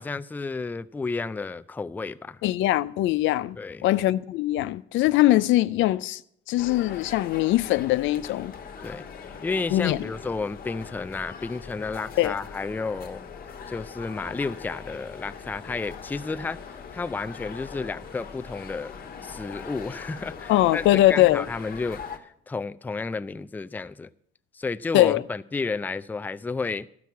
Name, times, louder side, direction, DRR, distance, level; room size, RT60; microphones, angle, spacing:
voice 1, 0.0-2.4 3.6-3.8 8.8-9.1 9.4-13.2 13.7-16.6 16.9-18.9 19.2-24.1 24.5-26.9, left 4 dB, 10° left, 0.3 m, -32 dB
voice 2, 2.4-3.6 3.8-6.2 6.5-8.5 9.7-10.0 12.2-12.4 20.5-21.4 24.9-25.2, left 15 dB, 80° left, 0.5 m, -21 dB
sound 1, 6.6-22.2, left 6 dB, 50° left, 1.3 m, -41 dB
12.5 x 6.1 x 8.2 m
cardioid pair, 110°, 20 cm